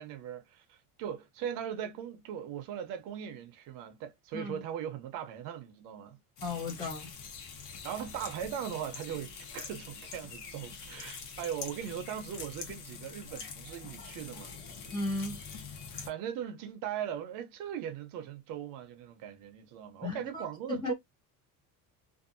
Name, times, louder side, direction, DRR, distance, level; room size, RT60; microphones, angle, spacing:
voice 1, 0.0-6.2 7.8-14.5 15.9-20.9, right 9 dB, 65° right, 0.7 m, -39 dB
sound 1, 6.4-16.1, left 5 dB, 65° left, 1.0 m, -45 dB
voice 2, 6.4-7.1 14.9-15.4 20.0-20.9, left 3 dB, 10° left, 0.5 m, -35 dB
2.7 x 2.5 x 2.5 m
cardioid pair, 180°, 36 cm